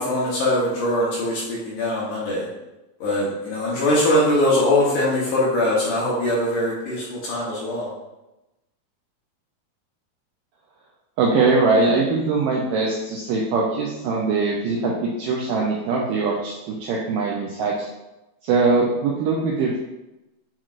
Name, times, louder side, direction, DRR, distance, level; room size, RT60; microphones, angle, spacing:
voice 1, 0.0-2.5 3.0-7.9, left 1 dB, 70° left, -5 dB, 2.1 m, -22 dB
voice 2, 11.2-17.9 18.4-19.8, right 3 dB, 85° right, -2 dB, 1.9 m, -22 dB
7.4 x 3.0 x 2.4 m, 0.98 s
omnidirectional pair, 4.4 m